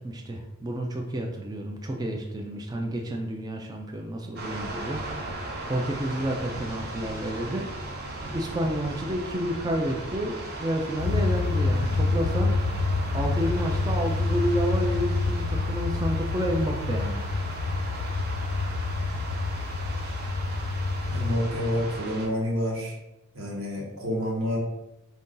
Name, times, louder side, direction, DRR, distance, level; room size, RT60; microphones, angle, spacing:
voice 1, 0.0-5.4 5.7-7.7 8.3-12.6 13.1-17.3, equal, 20° right, 2 dB, 0.3 m, -30 dB
sound 1, 4.4-22.3, right 2 dB, 50° right, 0.7 m, -37 dB
sound 2, 11.0-21.3, left 3 dB, 65° left, 0.4 m, -27 dB
voice 2, 21.1-23.0 23.3-24.6, left 1 dB, 90° right, -3 dB, 1.4 m, -28 dB
4.5 x 2.7 x 3.7 m, 0.95 s
head